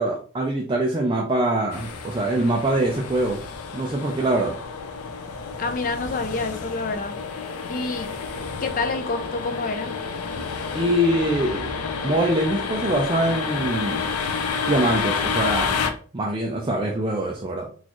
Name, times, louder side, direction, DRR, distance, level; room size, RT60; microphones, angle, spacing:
voice 1, 0.0-3.4 3.7-4.5 10.7-11.7 12.0-14.1 14.7-15.9 16.1-17.7, right 1 dB, 20° right, -2 dB, 0.4 m, -23 dB
sound 1, 1.7-15.9, left 5 dB, 85° left, 0.5 m, -29 dB
voice 2, 5.6-7.2 7.7-8.1 8.6-9.9, left 3 dB, 35° left, 6 dB, 0.5 m, -28 dB
4.0 x 2.5 x 3.0 m, 0.41 s
head